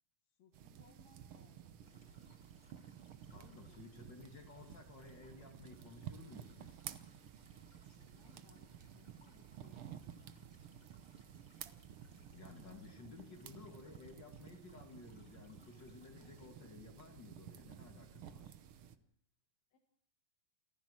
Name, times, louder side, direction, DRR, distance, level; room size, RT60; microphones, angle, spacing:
voice 1, 0.3-2.4 3.3-4.1 7.8-10.8 19.7-19.8, left 6 dB, 55° left, 2 dB, 3.1 m, -68 dB
sound 1, 0.5-19.0, right 9 dB, 80° right, 1.2 m, -53 dB
sound 2, 1.8-16.5, left 1 dB, 20° left, 3.7 m, -72 dB
sound 3, 3.0-18.5, left 3 dB, 85° left, 7.8 m, -74 dB
voice 2, 3.3-6.8 12.3-18.5, left 3 dB, 40° left, 4 dB, 2.3 m, -55 dB
28.5 x 14.5 x 6.3 m, 0.65 s
omnidirectional pair, 3.8 m